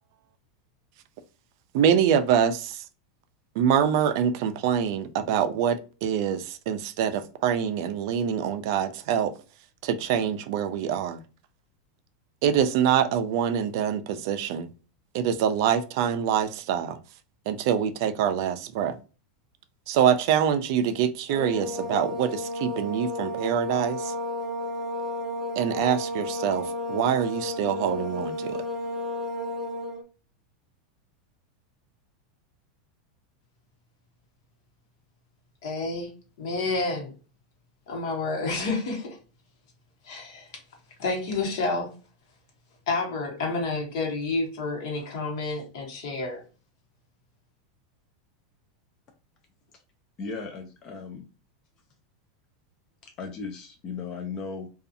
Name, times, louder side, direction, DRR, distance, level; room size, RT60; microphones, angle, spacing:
voice 1, 1.7-2.8 3.6-9.3 9.8-11.2 12.4-14.7 15.1-17.0 17.5-19.0 19.9-24.1 25.6-28.6, right 8 dB, 55° right, 0.3 m, -25 dB
sound 1, 21.3-30.0, left 1 dB, 5° right, 0.7 m, -32 dB
voice 2, 35.6-36.1 36.4-37.1 37.9-39.2 40.0-40.5 41.0-41.9 42.9-46.4, left 3 dB, 65° left, 1.0 m, -29 dB
voice 3, 50.2-51.2 53.0-54.7, left 4 dB, 25° left, 0.4 m, -36 dB
2.5 x 2.3 x 2.5 m
supercardioid pair, 160°, 2 cm